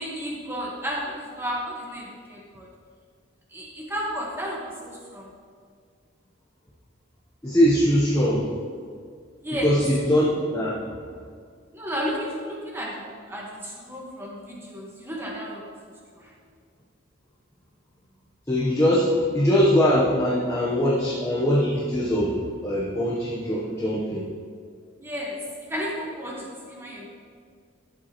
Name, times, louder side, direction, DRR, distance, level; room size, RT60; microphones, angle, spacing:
voice 1, 0.0-2.7 3.5-5.3 9.4-9.7 11.7-13.0 13.3-15.6 16.1-16.3 25.0-27.1, equal, 10° right, -3 dB, 1.4 m, -33 dB
voice 2, 7.4-8.5 9.6-10.8 18.5-22.3 22.6-24.3, equal, 15° left, -6 dB, 1.0 m, -22 dB
12.5 x 7.7 x 3.1 m, 2.1 s
head